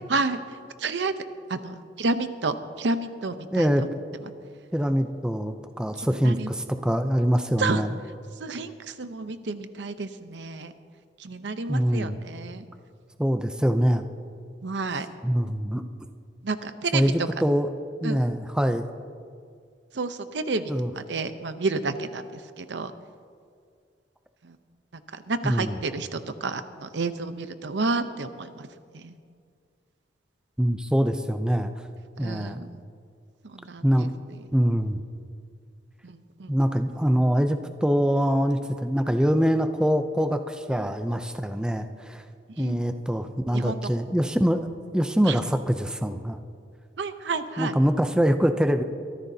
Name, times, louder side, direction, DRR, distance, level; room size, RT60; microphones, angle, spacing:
voice 1, 0.1-1.1 1.5-3.9 4.2-4.3 6.0-6.5 7.6-7.8 8.4-10.7 11.2-12.7 14.6-15.1 16.4-17.3 18.0-18.3 19.9-22.9 24.4-24.6 24.9-28.7 28.9-29.2 32.2-32.7 33.4-34.5 36.0-36.5 40.7-40.9 42.5-42.8 43.5-43.8 45.2-45.4 47.0-47.7, right 3 dB, 75° right, 10 dB, 0.7 m, -31 dB
voice 2, 3.5-3.8 4.7-7.9 11.7-12.2 13.2-14.1 15.2-15.8 16.9-17.7 18.0-18.9 20.7-20.9 25.4-25.7 30.6-31.7 32.2-32.6 33.8-34.1 34.5-35.0 36.5-42.2 42.6-46.4 47.6-48.8, equal, 5° right, 8 dB, 0.5 m, -24 dB
24.0 x 14.0 x 2.8 m, 2.2 s
head